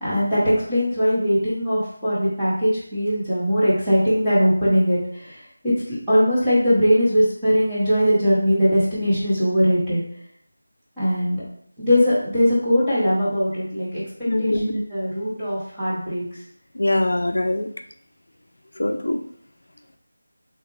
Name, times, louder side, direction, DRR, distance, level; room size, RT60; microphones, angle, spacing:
voice 1, 0.0-10.0 11.0-11.4 11.8-14.0 14.4-16.2, equal, 5° right, -14 dB, 0.8 m, -20 dB
voice 2, 14.3-14.8 16.8-17.7 18.8-19.2, left 1 dB, 80° left, 7 dB, 0.3 m, -22 dB
3.4 x 2.3 x 3.1 m, 0.63 s
figure-of-eight pair, 180°, 0 cm